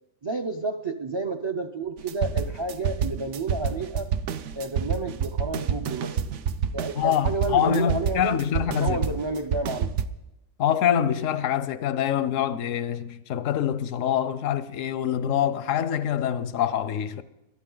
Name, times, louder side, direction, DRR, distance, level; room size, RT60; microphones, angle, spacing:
voice 1, 0.2-4.1 4.5-6.2 6.7-8.4 8.8-9.9, right 3 dB, 35° right, 0.5 m, -30 dB
sound 1, 2.0-10.1, right 7 dB, 70° right, 1.0 m, -28 dB
voice 2, 6.9-9.0 10.6-17.2, left 9 dB, 85° left, 1.0 m, -25 dB
21.5 x 12.5 x 3.9 m
omnidirectional pair, 1.3 m